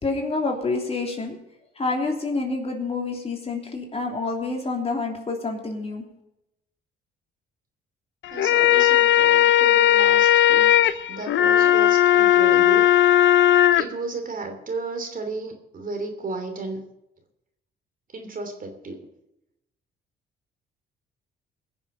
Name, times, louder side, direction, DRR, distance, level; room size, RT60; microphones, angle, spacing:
voice 1, 0.0-1.4 1.8-6.0, left 3 dB, 30° left, 1 dB, 3.2 m, -28 dB
sound 1, 8.2-13.8, left 12 dB, 70° left, 0.7 m, -17 dB
voice 2, 8.3-10.7 11.1-12.8 13.7-16.8 18.1-19.0, right 3 dB, 45° right, 5 dB, 3.0 m, -33 dB
21.0 x 7.2 x 5.4 m, 0.85 s
cardioid pair, 90°, 20 cm